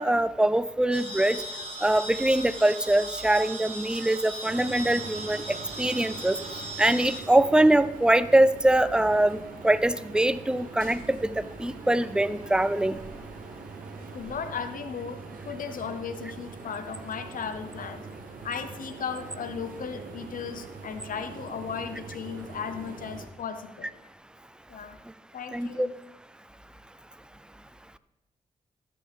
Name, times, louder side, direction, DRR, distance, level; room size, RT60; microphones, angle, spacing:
voice 1, 0.0-1.4 1.8-6.4 6.8-9.4 9.6-13.0 25.5-25.9, right 1 dB, 5° right, 15 dB, 0.5 m, -23 dB
sound 1, 0.9-7.2, right 1 dB, 40° right, 2.0 m, -38 dB
sound 2, 4.5-23.3, right 4 dB, 80° right, 1.0 m, -43 dB
voice 2, 14.1-18.0 18.4-23.9 24.7-25.0 25.3-25.9, left 6 dB, 75° left, 9 dB, 0.8 m, -36 dB
13.5 x 6.1 x 3.5 m, 0.89 s
cardioid pair, 50°, 14 cm